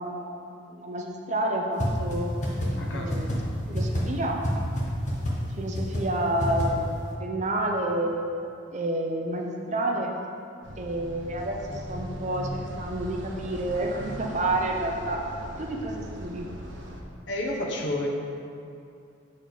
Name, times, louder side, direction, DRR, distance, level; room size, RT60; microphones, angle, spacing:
voice 1, 0.0-2.3 2.9-3.4 3.7-4.4 5.6-6.9 7.2-8.2 8.7-10.1 10.8-15.2 15.6-16.5, right 1 dB, 35° right, 0 dB, 0.7 m, -29 dB
sound 1, 1.8-1.9 2.1-2.2 2.4-2.7 3.1-3.3 3.7-4.0 4.4-4.5 4.8-4.9 5.1-5.3 5.7-6.0 6.4-6.6, left 1 dB, 40° left, 1.1 m, -27 dB
voice 2, 2.7-3.4 17.3-18.1, left 1 dB, 70° left, -1 dB, 1.0 m, -31 dB
sound 2, 10.6-17.0, equal, 75° right, 0.8 m, -39 dB
6.4 x 4.2 x 5.0 m, 2.5 s
head